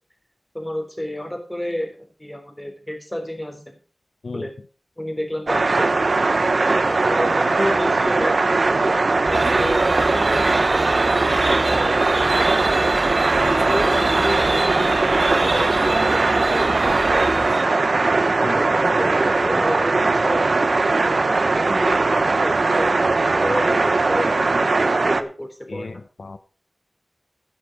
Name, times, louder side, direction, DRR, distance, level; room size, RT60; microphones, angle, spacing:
voice 1, 0.5-1.9 2.2-3.7 4.3-4.5 5.0-6.0 6.8-9.0 9.3-12.7 13.6-15.0 15.3-17.4 18.2-20.4 21.0-25.9, left 1 dB, 15° left, 4 dB, 3.7 m, -30 dB
sound 1, 5.5-25.2, right 3 dB, 75° right, 0.9 m, -19 dB
sound 2, 9.2-17.9, right 1 dB, 20° right, 0.5 m, -29 dB
voice 2, 13.4-13.8 18.4-18.6 23.5-23.6 25.7-26.4, left 3 dB, 90° left, 11 dB, 0.7 m, -34 dB
12.0 x 10.0 x 4.7 m, 0.36 s
wide cardioid pair, 70°, 0 cm